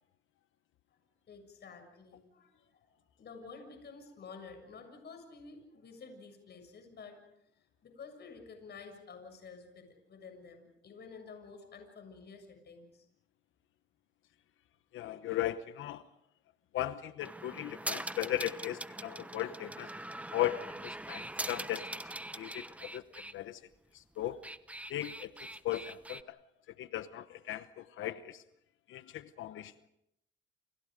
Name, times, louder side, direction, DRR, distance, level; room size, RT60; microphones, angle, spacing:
voice 1, 1.3-7.2 7.8-13.1, left 5 dB, 55° left, 5 dB, 7.2 m, -51 dB
voice 2, 14.9-16.0 16.7-19.9 20.3-21.9 22.4-23.6 23.9-24.4 24.9-25.3 25.6-26.4 26.8-28.4 28.9-29.7, left 13 dB, 80° left, 12 dB, 1.0 m, -37 dB
sound 1, 17.2-23.3 24.2-26.2, right 1 dB, 5° right, 1.1 m, -42 dB
29.0 x 28.5 x 5.2 m, 0.79 s
cardioid pair, 90°, 20 cm